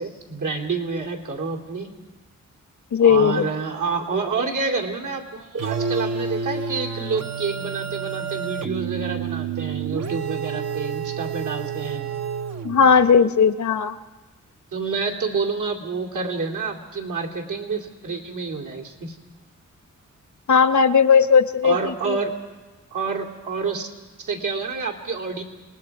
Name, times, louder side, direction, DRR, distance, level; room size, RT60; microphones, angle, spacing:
voice 1, 0.0-1.9 3.0-12.1 14.7-19.2 21.6-22.4 22.9-23.9 24.2-25.4, right 4 dB, 75° right, 0 dB, 2.8 m, -28 dB
voice 2, 2.9-3.5 12.6-14.0 20.5-22.2, left 6 dB, 65° left, 11 dB, 0.9 m, -17 dB
sound 1, 5.6-13.1, right 6 dB, 55° right, 0.8 m, -29 dB
29.0 x 19.5 x 4.8 m, 1.3 s
wide cardioid pair, 90°, 31 cm